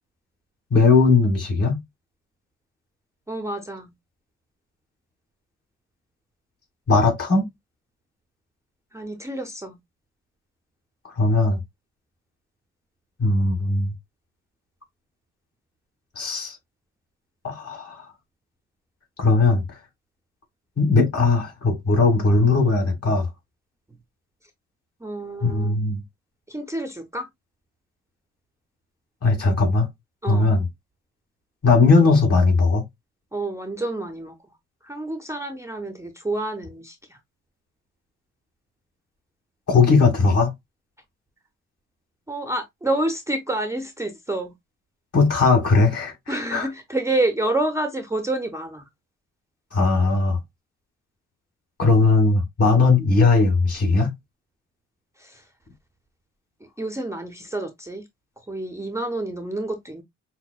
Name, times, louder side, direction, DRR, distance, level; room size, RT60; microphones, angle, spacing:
voice 1, 0.7-1.8 6.9-7.5 11.2-11.6 13.2-13.9 16.2-16.6 17.4-18.0 19.2-19.6 20.8-23.3 25.4-26.0 29.2-29.9 30.3-30.6 31.6-32.8 39.7-40.5 45.1-46.7 49.7-50.4 51.8-54.1, left 3 dB, 55° left, 2.4 m, -18 dB
voice 2, 3.3-3.9 8.9-9.8 25.0-25.8 26.5-27.3 29.5-29.6 30.2-30.6 33.3-34.3 34.8-37.2 42.3-44.5 46.3-48.9 55.2-55.4 56.8-58.1 58.5-60.0, right 2 dB, 10° right, 0.5 m, -28 dB
5.8 x 2.1 x 2.3 m
cardioid pair, 90°, 30 cm